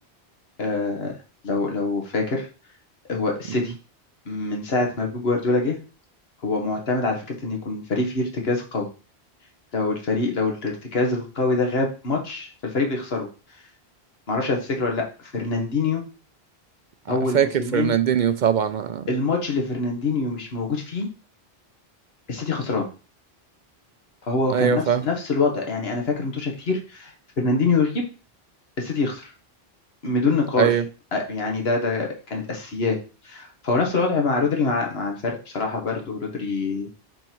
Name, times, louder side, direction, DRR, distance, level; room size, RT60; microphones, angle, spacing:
voice 1, 0.6-1.1 1.4-2.5 3.1-3.7 4.3-5.8 6.4-8.9 9.7-13.3 14.3-15.1 15.3-16.0 17.1-17.9 19.1-21.1 22.3-22.9 24.3-28.0 28.8-29.3 30.0-30.7 31.1-33.0 33.2-36.9, left 3 dB, 75° left, 1.7 m, -25 dB
voice 2, 17.1-17.5 17.7-19.0 24.5-25.0 30.6-30.8, right 8 dB, 55° right, 0.6 m, -21 dB
5.4 x 5.3 x 4.6 m
omnidirectional pair, 1.1 m